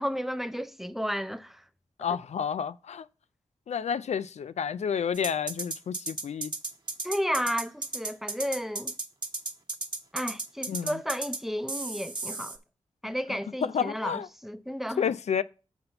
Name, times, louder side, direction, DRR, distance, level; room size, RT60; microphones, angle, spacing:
voice 1, 0.0-1.6 7.0-9.0 10.1-12.6 13.0-15.1, equal, ahead, 0.6 m, -32 dB
voice 2, 2.0-3.0 3.7-6.5 10.7-10.9 13.6-14.3 15.0-15.4, left 7 dB, 65° left, 0.4 m, -30 dB
sound 1, 5.1-11.4 11.7-12.6, right 3 dB, 40° right, 1.2 m, -34 dB
7.0 x 4.0 x 6.6 m
cardioid pair, 40°, 12 cm